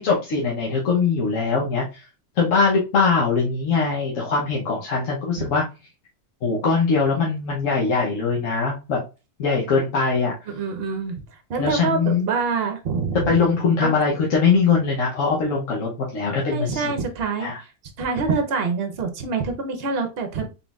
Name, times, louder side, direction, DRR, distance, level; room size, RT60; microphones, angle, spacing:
voice 1, 0.0-2.0 2.4-5.6 6.4-9.0 9.4-10.3 11.6-12.3 13.1-16.9 17.4-17.6, left 4 dB, 85° left, -3 dB, 1.2 m, -21 dB
voice 2, 10.5-11.2 11.5-13.4 13.8-13.9 16.5-17.7 18.0-20.5, right 4 dB, 55° right, 6 dB, 1.0 m, -26 dB
3.9 x 3.8 x 2.3 m, 0.29 s
omnidirectional pair, 1.3 m